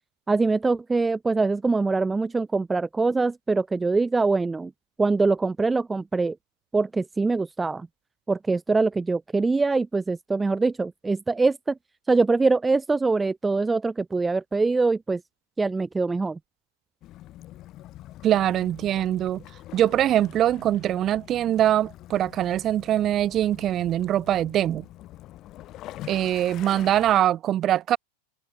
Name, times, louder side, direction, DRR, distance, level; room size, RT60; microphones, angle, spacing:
voice 1, 0.3-4.7 5.0-6.4 6.7-7.9 8.3-11.8 12.1-15.2 15.6-16.4, right 3 dB, 10° right, 0.4 m, -23 dB
Waves surf / Splash splatter / Trickle dribble, 17.0-27.2, left 15 dB, 35° left, 2.2 m, -45 dB
voice 2, 18.2-19.4 19.7-24.8 26.1-28.0, right 12 dB, 30° right, 1.1 m, -23 dB
figure-of-eight pair, 90°, 0 cm